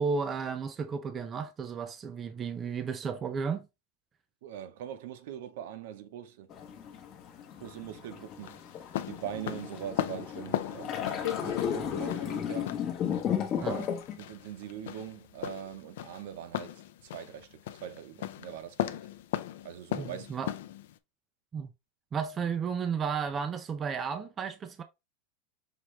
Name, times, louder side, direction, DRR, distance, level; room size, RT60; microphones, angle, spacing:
voice 1, 0.0-3.7 13.6-13.8 20.0-20.5 21.5-21.7 22.1-24.8, right 6 dB, 15° right, 0.4 m, -33 dB
voice 2, 4.4-6.5 7.6-8.6 9.1-11.0 11.4-12.7 13.6-13.8 14.2-16.7 17.0-19.0 19.6-20.3, right 10 dB, 65° right, 0.8 m, -42 dB
sound 1, 6.5-14.2, left 8 dB, 30° left, 0.8 m, -34 dB
sound 2, 6.6-21.0, left 12 dB, 75° left, 0.4 m, -38 dB
5.7 x 2.9 x 3.1 m
supercardioid pair, 175°, 0 cm